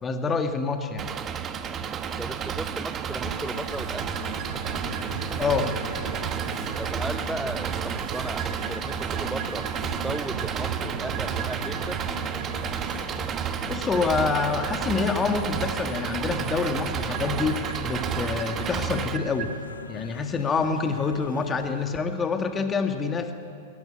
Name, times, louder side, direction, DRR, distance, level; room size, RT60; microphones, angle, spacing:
voice 1, 0.0-1.1 5.4-5.8 13.6-19.5 19.9-23.3, left 4 dB, 20° left, 6 dB, 1.7 m, -27 dB
Engine, 1.0-19.2, right 7 dB, 25° right, 1.0 m, -31 dB
voice 2, 2.2-4.2 6.8-12.0, right 1 dB, 5° right, 10 dB, 0.5 m, -36 dB
sound 1, 3.2-21.9, left 4 dB, 80° left, 1.0 m, -43 dB
sound 2, 3.7-19.6, right 7 dB, 45° right, 1.8 m, -38 dB
21.0 x 13.0 x 9.7 m, 2.6 s
figure-of-eight pair, 100°, 0 cm